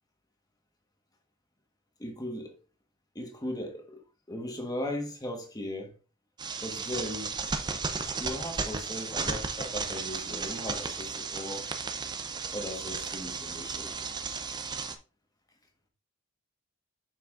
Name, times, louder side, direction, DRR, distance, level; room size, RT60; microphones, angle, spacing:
voice 1, 2.0-2.5 3.1-4.0 4.3-5.9 6.6-7.4 8.2-11.7 12.5-13.9, left 1 dB, 20° left, 1.4 m, -37 dB
sound 1, 6.4-15.0, right 4 dB, 20° right, 0.6 m, -34 dB
7.3 x 5.8 x 2.6 m
head